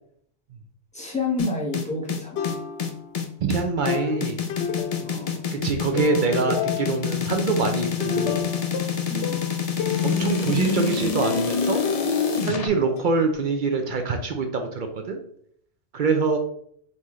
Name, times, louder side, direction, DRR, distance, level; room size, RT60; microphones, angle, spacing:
voice 1, 0.9-2.5 5.0-5.5 9.1-9.5, left 2 dB, 5° left, -3 dB, 1.1 m, -30 dB
Snare Roll Pitch, 1.4-12.7, left 6 dB, 50° left, 0.5 m, -26 dB
sound 1, 2.3-3.2 3.9-5.5 6.0-7.2 7.6-10.1 11.2-13.0, left 7 dB, 75° left, 0.9 m, -31 dB
voice 2, 3.4-4.4 5.5-8.5 10.0-11.8 12.4-15.2 15.9-16.4, right 4 dB, 55° right, 5 dB, 0.6 m, -24 dB
4.1 x 3.7 x 3.1 m, 0.64 s
omnidirectional pair, 1.2 m